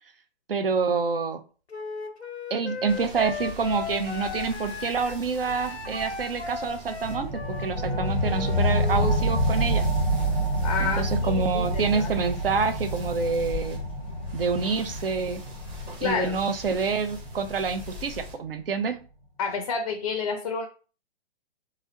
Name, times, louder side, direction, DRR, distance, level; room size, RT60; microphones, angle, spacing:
voice 1, 0.5-1.4 2.5-7.3 7.6-9.9 10.8-13.8 14.3-15.4 16.0-19.0, right 5 dB, 65° right, 8 dB, 0.6 m, -27 dB
Wind instrument woodwind instrument, 1.7-9.2, left 4 dB, 85° left, 0.7 m, -36 dB
sound 1, 2.9-18.3, left 2 dB, 15° right, 0.7 m, -42 dB
sound 2, 7.0-18.1, right 1 dB, 90° right, 2.0 m, -28 dB
voice 2, 10.6-12.1 16.0-16.4 19.4-20.7, left 5 dB, 35° left, 5 dB, 0.5 m, -29 dB
3.7 x 3.0 x 2.9 m, 0.37 s
figure-of-eight pair, 120°, 32 cm